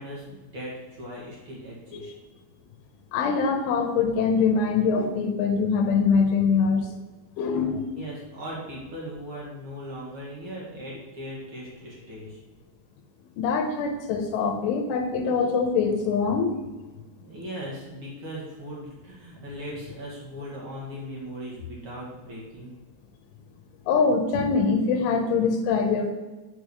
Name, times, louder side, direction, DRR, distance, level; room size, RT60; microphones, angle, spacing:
voice 1, 0.0-2.1 7.9-12.4 17.2-22.7, equal, 75° right, -5 dB, 1.2 m, -38 dB
voice 2, 3.1-6.9 7.4-7.9 13.4-16.5 23.9-26.1, left 5 dB, 80° left, 5 dB, 3.1 m, -23 dB
9.7 x 4.7 x 6.4 m, 1.2 s
omnidirectional pair, 6.0 m